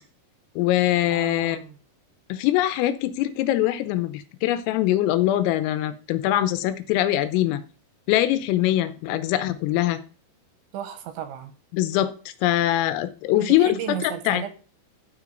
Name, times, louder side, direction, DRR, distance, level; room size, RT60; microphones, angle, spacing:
voice 1, 0.6-1.6 2.3-7.6 8.1-10.0 11.7-13.8 14.0-14.4, left 14 dB, 85° left, 12 dB, 3.5 m, -23 dB
voice 2, 1.1-1.8 9.1-9.2 10.7-11.5 13.4-14.5, right 10 dB, 75° right, 9 dB, 3.0 m, -34 dB
14.0 x 6.1 x 3.9 m, 0.38 s
omnidirectional pair, 5.8 m